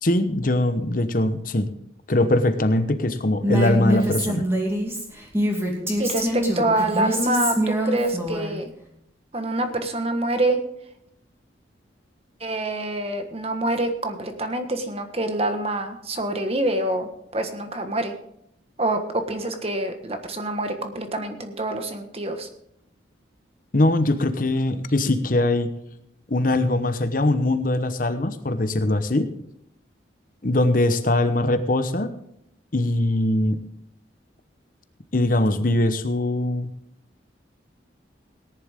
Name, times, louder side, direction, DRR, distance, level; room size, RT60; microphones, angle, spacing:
voice 1, 0.0-1.7 2.1-4.5 23.7-25.7 26.3-29.3 30.4-32.1 32.7-33.6 35.1-36.7, left 1 dB, 45° left, 9 dB, 1.0 m, -21 dB
Female speech woman speaking, 3.4-8.5, equal, 15° right, 2.7 m, -24 dB
voice 2, 6.0-8.7 9.3-10.6 12.4-18.1 18.8-22.5, right 1 dB, 35° right, 6 dB, 1.4 m, -26 dB
18.0 x 10.5 x 3.6 m, 0.74 s
head